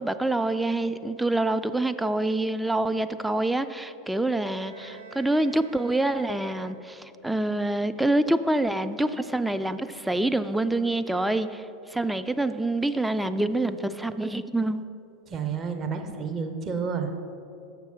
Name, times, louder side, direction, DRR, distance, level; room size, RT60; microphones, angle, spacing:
voice 1, 0.0-11.6 11.9-14.9, right 2 dB, 5° right, 10 dB, 0.3 m, -26 dB
Bowed string instrument, 4.6-7.3, right 4 dB, 75° right, 0.7 m, -48 dB
voice 2, 15.3-17.2, right 5 dB, 30° right, 5 dB, 0.7 m, -30 dB
7.5 x 5.9 x 5.6 m, 2.7 s
figure-of-eight pair, 85°, 0 cm